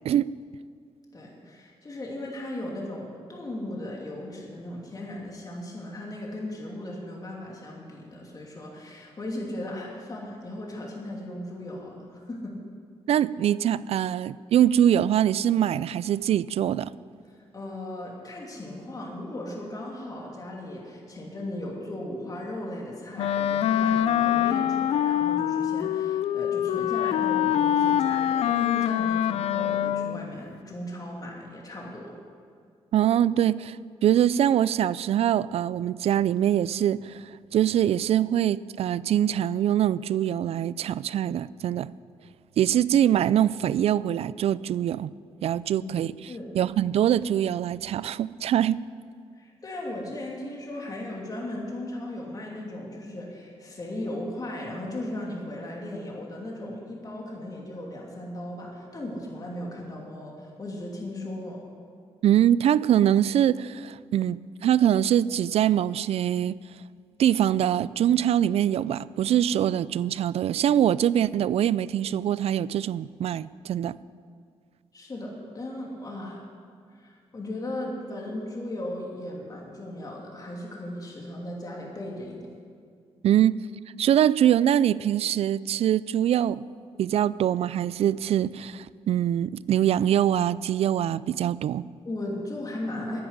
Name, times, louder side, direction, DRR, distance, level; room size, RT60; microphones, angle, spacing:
voice 1, 1.1-12.6 17.5-32.1 45.7-45.9 46.3-46.5 49.3-61.6 74.9-76.4 76.9-82.4 92.0-93.2, left 1 dB, 35° left, -2 dB, 2.8 m, -37 dB
voice 2, 13.1-16.9 32.9-33.8 34.0-37.1 37.5-41.9 42.6-45.1 45.4-46.1 46.5-48.8 62.2-66.6 67.2-73.9 83.2-83.6 84.0-86.7 87.0-91.9, right 10 dB, 70° right, 19 dB, 0.4 m, -23 dB
Wind instrument woodwind instrument, 23.2-30.3, left 10 dB, 75° left, 0.4 m, -24 dB
10.0 x 9.5 x 9.6 m, 2.2 s
cardioid pair, 85°, 11 cm